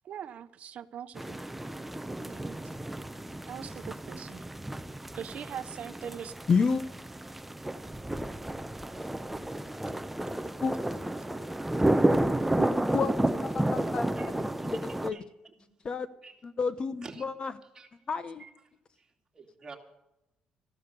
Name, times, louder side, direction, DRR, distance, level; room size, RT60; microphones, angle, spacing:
voice 1, 0.0-1.4 2.2-2.6 3.4-4.5 5.1-6.4, right 9 dB, 60° right, 13 dB, 0.8 m, -41 dB
sound 1, 1.2-15.1, right 1 dB, 5° right, 0.6 m, -31 dB
voice 2, 6.5-6.8 10.6-10.7 12.6-12.7 12.9-13.1 13.4-14.1 14.7-15.2 15.8-16.1 16.4-17.5 18.1-18.5, left 5 dB, 35° left, 13 dB, 0.9 m, -29 dB
voice 3, 15.1-15.7 16.2-16.3 17.0-17.2 17.7-17.9 18.4-18.5 19.0-19.1 19.3-19.8, right 4 dB, 25° right, 2 dB, 2.6 m, -49 dB
14.5 x 12.5 x 6.8 m, 0.89 s
cardioid pair, 120°, 3 cm